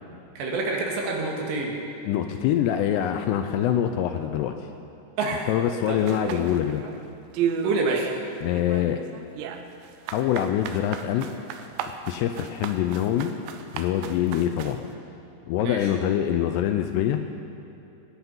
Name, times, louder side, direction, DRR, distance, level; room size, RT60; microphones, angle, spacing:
voice 1, 0.4-1.8 5.2-5.5 5.9-6.0 7.6-8.1 15.6-15.8, right 3 dB, 75° right, -1 dB, 3.9 m, -27 dB
voice 2, 2.1-4.5 5.5-6.8 8.4-9.0 10.1-11.3 12.1-13.3 13.7-14.8 15.5-17.2, left 10 dB, 85° left, 7 dB, 2.5 m, -24 dB
sound 1, 6.1-7.0 7.3-8.2 8.5-14.8, right 8 dB, 90° right, 3.0 m, -33 dB
22.0 x 8.1 x 5.5 m, 2.9 s
omnidirectional pair, 5.2 m